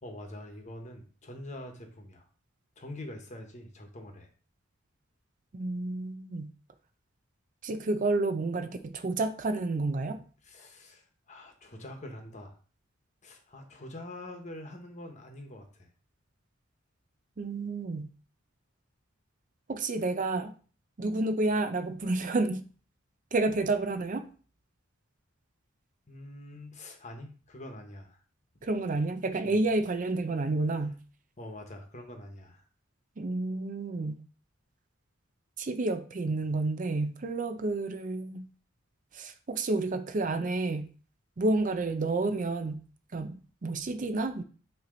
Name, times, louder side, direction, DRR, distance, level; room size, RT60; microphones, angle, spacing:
voice 1, 0.0-2.2 2.8-4.3 10.4-12.6 13.2-15.9 26.1-28.2 28.6-28.7 29.4-29.6 31.4-32.6, left 1 dB, 35° left, 4 dB, 1.1 m, -45 dB
voice 2, 5.5-6.5 7.6-10.2 17.4-18.1 19.7-20.5 21.0-22.6 23.3-24.3 28.6-31.0 33.2-34.2 35.6-38.5 39.1-40.9 41.4-42.8 43.1-44.4, right 2 dB, 40° right, 9 dB, 0.5 m, -30 dB
8.7 x 3.0 x 3.8 m, 0.39 s
head